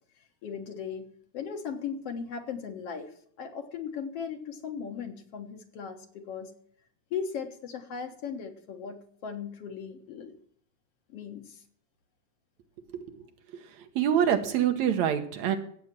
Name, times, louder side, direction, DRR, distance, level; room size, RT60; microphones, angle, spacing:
voice 1, 0.4-1.1 1.3-6.5 7.1-10.3 11.1-11.6, left 6 dB, 60° left, 5 dB, 2.0 m, -37 dB
voice 2, 12.9-13.2 13.6-15.6, right 9 dB, 70° right, 7 dB, 2.4 m, -26 dB
15.5 x 8.7 x 6.0 m, 0.62 s
omnidirectional pair, 3.4 m